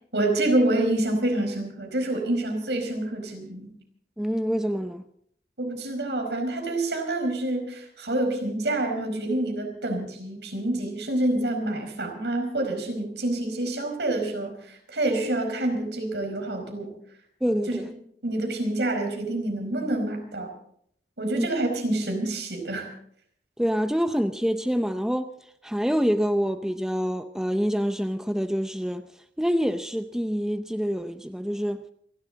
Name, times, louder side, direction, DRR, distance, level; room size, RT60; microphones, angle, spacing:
voice 1, 0.1-3.7 5.6-16.9 17.7-17.8 18.2-20.5 21.2-22.9, right 1 dB, 75° right, 4.9 m, -27 dB
voice 2, 4.2-5.0 17.4-17.9 21.3-21.5 23.6-25.3 25.6-29.0 29.4-31.8, equal, 5° right, 0.6 m, -26 dB
28.0 x 12.0 x 4.0 m
head